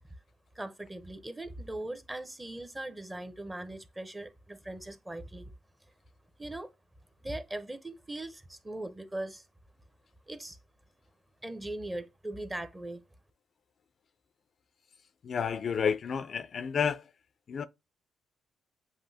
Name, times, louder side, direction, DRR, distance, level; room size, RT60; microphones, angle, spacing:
voice 1, 0.6-5.5 6.4-6.7 7.2-9.4 10.3-10.6 11.4-13.0, right 1 dB, 15° right, 0.7 m, -40 dB
voice 2, 15.2-17.1 17.5-17.6, left 7 dB, 50° left, 0.4 m, -30 dB
7.5 x 2.6 x 2.7 m
cardioid pair, 90°, 0 cm